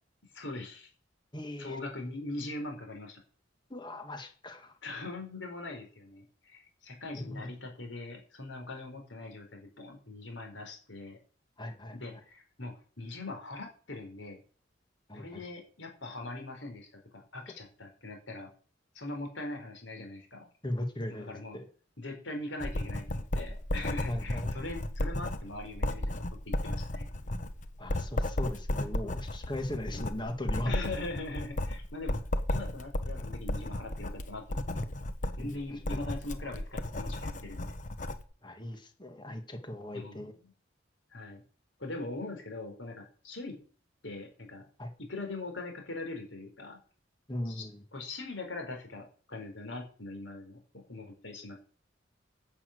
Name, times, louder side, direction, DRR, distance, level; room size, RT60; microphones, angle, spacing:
voice 1, 0.3-0.9 1.6-3.2 4.8-11.2 11.9-14.4 15.1-16.9 17.1-18.5 18.9-20.5 21.1-21.6 22.0-27.1 30.6-32.2 32.5-34.8 35.4-37.8 39.9-40.5 41.1-41.4 41.8-43.6 44.0-44.7 45.0-46.8 47.4-47.6 47.9-51.6, left 2 dB, 80° left, 3 dB, 4.5 m, -41 dB
voice 2, 1.3-1.8 3.7-4.7 7.1-7.5 11.6-12.2 15.1-15.4 20.6-21.7 24.1-24.5 27.8-30.7 35.4-35.6 35.9-36.0 38.4-40.3 44.8-44.9 47.3-47.8, left 1 dB, 25° left, 6 dB, 1.9 m, -38 dB
Writing, 22.6-38.2, left 1 dB, 40° left, 1.1 m, -34 dB
11.5 x 7.1 x 7.9 m, 0.43 s
head